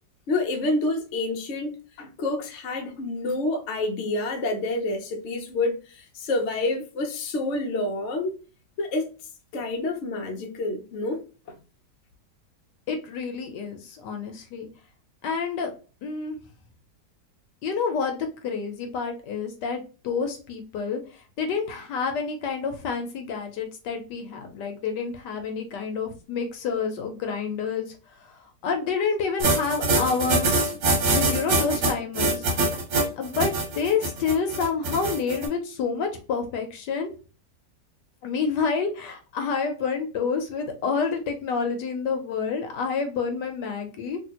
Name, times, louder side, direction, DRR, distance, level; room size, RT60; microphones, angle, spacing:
voice 1, 0.3-8.4 8.8-9.1 9.5-11.2, left 2 dB, 55° left, 0.9 m, -28 dB
voice 2, 12.9-14.7 15.2-15.7 16.0-16.4 17.6-28.4 28.6-30.8 31.0-32.7 33.2-37.1 38.2-44.2, left 5 dB, 75° left, 1.3 m, -28 dB
sound 1, 29.4-35.5, right 2 dB, 80° right, 1.7 m, -24 dB
3.4 x 2.8 x 2.9 m
omnidirectional pair, 1.9 m